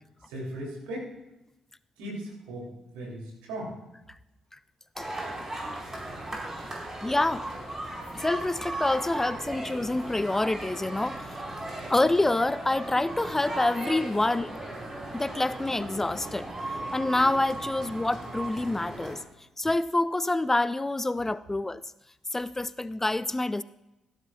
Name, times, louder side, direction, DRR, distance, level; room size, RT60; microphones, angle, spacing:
voice 1, 0.2-1.1 2.0-3.8 5.6-5.7, right 1 dB, 75° right, -2 dB, 3.1 m, -38 dB
sound 1, 5.0-19.1, right 1 dB, 25° right, 4.8 m, -37 dB
voice 2, 7.0-7.5 8.1-11.4 11.9-14.6 15.1-16.5 16.9-19.2 19.6-21.8 22.3-23.6, left 2 dB, 15° left, 17 dB, 0.4 m, -27 dB
15.5 x 12.5 x 2.4 m, 0.96 s
figure-of-eight pair, 40°, 2 cm